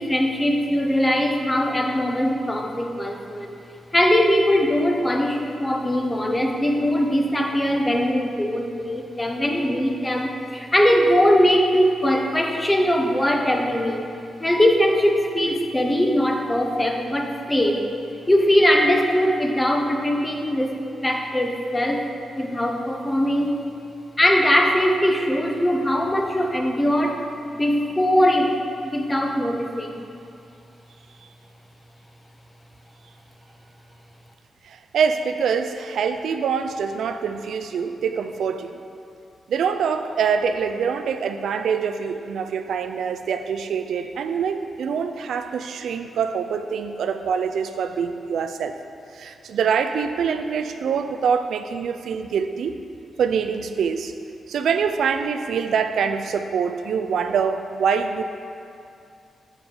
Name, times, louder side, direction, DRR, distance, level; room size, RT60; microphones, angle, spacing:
voice 1, 0.0-3.5 3.9-14.0 14.4-17.8 18.3-20.8 21.0-22.1 22.3-23.6 24.2-27.3 27.5-28.6 28.9-30.0, equal, 10° left, 1 dB, 0.5 m, -21 dB
voice 2, 34.6-38.8 39.5-48.7 49.1-52.7 53.2-54.1 54.5-58.2, right 6 dB, 80° right, 8 dB, 0.3 m, -25 dB
6.8 x 5.7 x 3.7 m, 2.5 s
wide cardioid pair, 175°, 0 cm